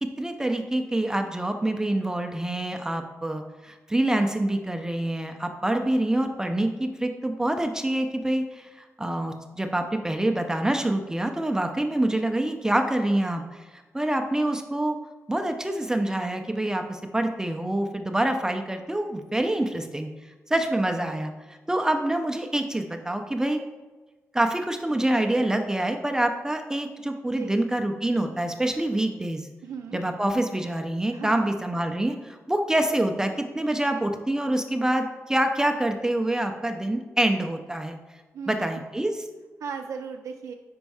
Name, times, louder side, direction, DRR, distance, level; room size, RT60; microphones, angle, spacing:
voice 1, 0.0-8.7 9.0-15.0 15.3-20.1 20.5-21.3 21.7-23.6 24.3-29.5 29.9-38.0 38.5-39.2, right 1 dB, 10° right, 5 dB, 0.5 m, -26 dB
voice 2, 29.6-30.0 31.1-31.6 38.3-38.8 39.6-40.5, right 6 dB, 90° right, 4 dB, 0.4 m, -36 dB
5.2 x 4.4 x 4.7 m, 1.2 s
wide cardioid pair, 115°, 5 cm